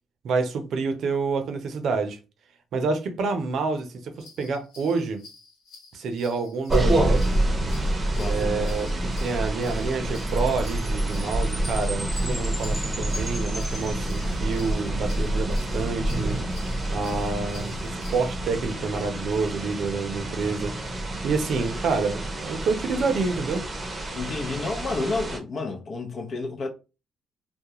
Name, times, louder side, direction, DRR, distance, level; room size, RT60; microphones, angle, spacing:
voice 1, 0.2-2.2 2.7-5.2 5.9-7.2 8.2-16.4 16.9-20.9 21.2-23.7, right 4 dB, 70° right, 0.5 m, -28 dB
sound 1, 4.1-18.2, left 4 dB, 85° left, 1.0 m, -50 dB
sound 2, 6.7-25.4, right 1 dB, 25° right, 0.7 m, -28 dB
voice 2, 8.1-9.1 24.1-26.7, left 3 dB, 50° left, 0.7 m, -31 dB
Chime, 10.3-14.8, left 1 dB, 5° left, 0.7 m, -39 dB
2.3 x 2.1 x 2.8 m
cardioid pair, 90°, 0 cm